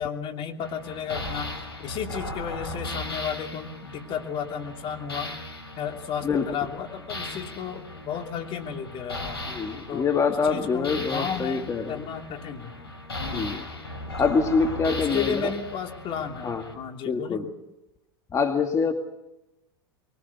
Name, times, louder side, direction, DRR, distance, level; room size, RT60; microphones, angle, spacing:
voice 1, 0.0-5.3 5.8-9.4 9.9-12.7 13.2-13.6 14.2-14.3 14.9-17.4, left 7 dB, 45° left, 4 dB, 3.0 m, -33 dB
sound 1, 0.6-16.7, left 2 dB, 90° left, 4.5 m, -37 dB
voice 2, 9.5-12.0 13.3-13.7 14.2-15.5 16.4-16.6 17.1-17.5 18.3-18.9, left 5 dB, 25° left, 4 dB, 2.2 m, -25 dB
23.5 x 20.0 x 7.0 m, 0.93 s
hypercardioid pair, 90°, 13 cm